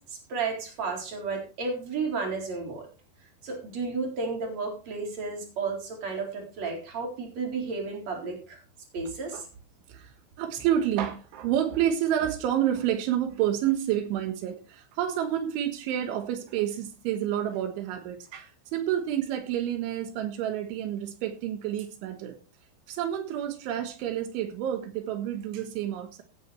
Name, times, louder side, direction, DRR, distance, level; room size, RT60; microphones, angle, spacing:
voice 1, 0.0-2.9 3.4-8.6 8.9-9.5, right 4 dB, 40° right, 1 dB, 4.8 m, -32 dB
voice 2, 10.4-22.4 22.9-26.2, right 10 dB, 85° right, 6 dB, 3.8 m, -29 dB
16.5 x 9.3 x 3.3 m, 0.33 s
omnidirectional pair, 5.3 m